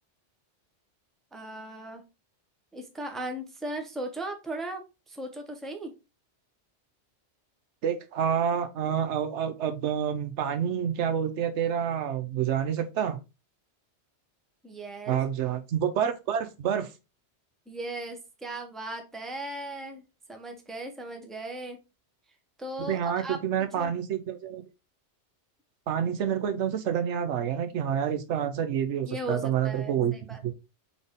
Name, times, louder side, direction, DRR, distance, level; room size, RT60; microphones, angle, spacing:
voice 1, 1.3-2.0 2.7-5.9 14.6-15.2 17.7-20.0 20.3-21.8 22.6-23.9 29.0-30.5, right 1 dB, ahead, 4 dB, 0.7 m, -37 dB
voice 2, 7.8-13.2 15.1-16.9 22.9-24.6 25.9-30.1 30.4-30.5, right 8 dB, 85° right, 9 dB, 1.0 m, -28 dB
4.1 x 3.5 x 3.6 m, 0.28 s
omnidirectional pair, 1.2 m